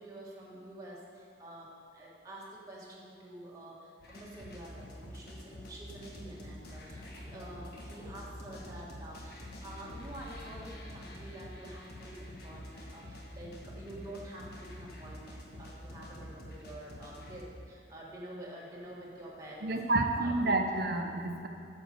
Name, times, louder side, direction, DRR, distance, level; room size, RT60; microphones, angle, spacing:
voice 1, 0.0-19.7 20.1-20.6 21.4-21.5, right 1 dB, 20° right, -5 dB, 1.7 m, -48 dB
sound 1, 4.0-17.4, equal, 55° left, 1.3 m, -47 dB
voice 2, 19.6-21.5, right 2 dB, 55° right, 4 dB, 0.8 m, -29 dB
8.9 x 5.4 x 6.8 m, 2.4 s
head